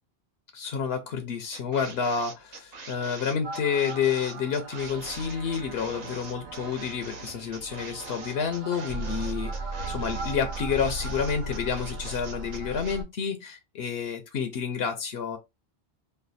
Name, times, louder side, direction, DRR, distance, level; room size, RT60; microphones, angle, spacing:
voice 1, 0.5-9.5 9.9-15.4, left 6 dB, 75° left, 0.8 m, -29 dB
sound 1, 1.5-13.0, right 3 dB, 45° right, 0.7 m, -43 dB
sound 2, 3.4-13.0, right 2 dB, 70° right, 1.1 m, -37 dB
3.2 x 2.2 x 3.9 m
omnidirectional pair, 1.1 m